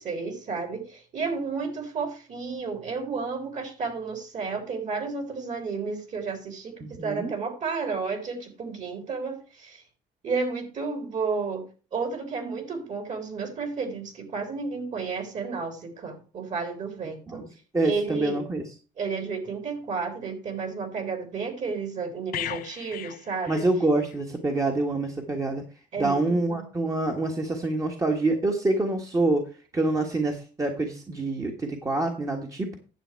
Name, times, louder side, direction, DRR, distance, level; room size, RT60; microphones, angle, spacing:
voice 1, 0.0-9.8 10.2-17.4 17.8-18.4 19.0-23.7 25.9-26.2 26.5-26.7, right 4 dB, 45° right, 6 dB, 3.7 m, -32 dB
voice 2, 6.8-7.3 17.3-17.5 17.7-18.7 23.5-25.6 26.0-29.4 29.7-32.8, right 2 dB, 20° right, 2 dB, 1.5 m, -26 dB
sound 1, 22.3-24.2 24.5-24.7, left 11 dB, 60° left, 0.8 m, -37 dB
10.0 x 7.4 x 4.6 m, 0.35 s
cardioid pair, 110°, 17 cm